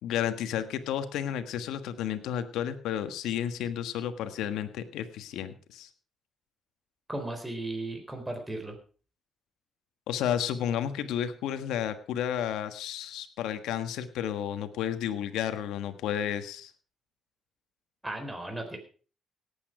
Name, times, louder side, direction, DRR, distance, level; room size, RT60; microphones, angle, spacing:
voice 1, 0.0-5.9 10.1-16.7, left 10 dB, 90° left, 10 dB, 1.5 m, -32 dB
voice 2, 7.1-8.8 18.0-18.8, right 2 dB, 10° right, 4 dB, 3.8 m, -36 dB
18.0 x 8.7 x 4.9 m, 0.39 s
cardioid pair, 90°, 0 cm